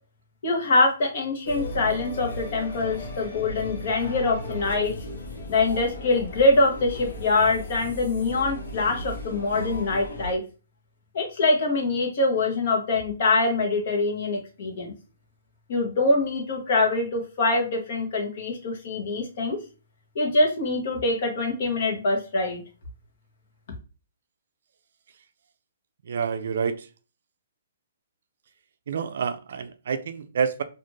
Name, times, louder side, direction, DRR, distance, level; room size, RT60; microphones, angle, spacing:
voice 1, 0.4-4.9 5.5-10.4 11.1-14.9 15.7-19.6 20.1-22.6, left 2 dB, 50° left, 1 dB, 1.0 m, -24 dB
sound 1, 1.4-10.3, left 1 dB, 85° left, 0.9 m, -36 dB
voice 2, 26.1-26.9 28.9-30.6, right 6 dB, 65° right, 10 dB, 0.3 m, -28 dB
2.5 x 2.4 x 3.0 m, 0.33 s
hypercardioid pair, 165°, 0 cm